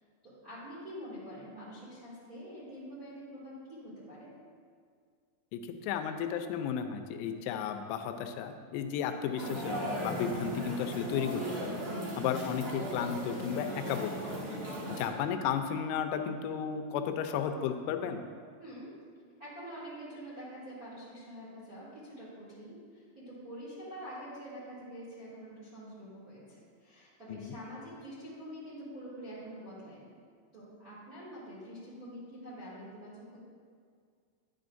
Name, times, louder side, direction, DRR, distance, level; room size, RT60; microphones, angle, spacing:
voice 1, 0.2-4.3 18.6-18.9 19.4-30.1 30.5-33.4, equal, 55° right, -10 dB, 1.0 m, -46 dB
voice 2, 5.5-11.8 12.2-14.5 14.9-18.2 27.3-27.6, left 7 dB, 90° left, 7 dB, 3.3 m, -34 dB
sound 1, 9.4-15.1, right 1 dB, 75° right, 1.2 m, -37 dB
10.0 x 9.0 x 2.6 m, 2.1 s
omnidirectional pair, 5.9 m